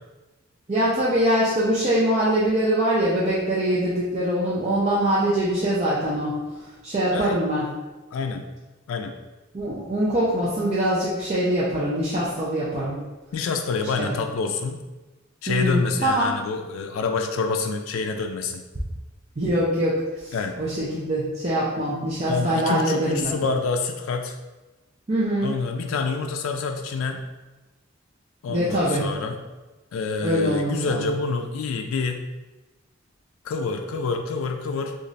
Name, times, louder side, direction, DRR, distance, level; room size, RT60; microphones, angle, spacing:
voice 1, 0.7-6.4 6.8-7.7 9.5-13.0 13.9-14.1 15.5-16.3 19.4-23.3 25.1-25.6 28.5-29.0 30.2-31.1, right 1 dB, 30° right, -7 dB, 0.5 m, -23 dB
voice 2, 8.1-8.4 8.9-9.2 13.3-14.8 15.4-18.7 20.3-20.6 22.3-24.4 25.4-27.2 28.4-29.4 29.9-32.2 33.4-35.0, left 4 dB, 85° left, 5 dB, 0.3 m, -27 dB
3.1 x 2.4 x 3.9 m, 1.1 s
head